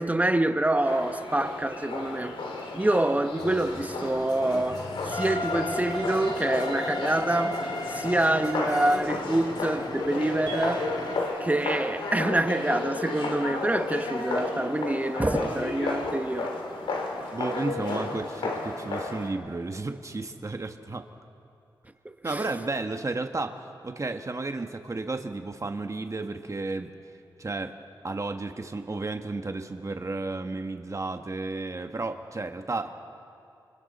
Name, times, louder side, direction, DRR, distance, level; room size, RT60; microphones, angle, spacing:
voice 1, 0.0-2.3 2.7-10.9 11.4-16.5 22.3-22.4, right 1 dB, 15° right, 1.2 m, -26 dB
sound 1, 0.8-19.3, left 3 dB, 90° left, 2.4 m, -33 dB
sound 2, 3.4-11.2, left 2 dB, 50° left, 2.3 m, -36 dB
sound 3, 10.5-15.4, right 4 dB, 65° right, 4.0 m, -45 dB
voice 2, 17.3-21.1 22.2-26.9 27.4-27.7 28.0-32.9, right 3 dB, 35° right, 1.3 m, -33 dB
27.0 x 25.5 x 4.2 m
cardioid pair, 55°, 9 cm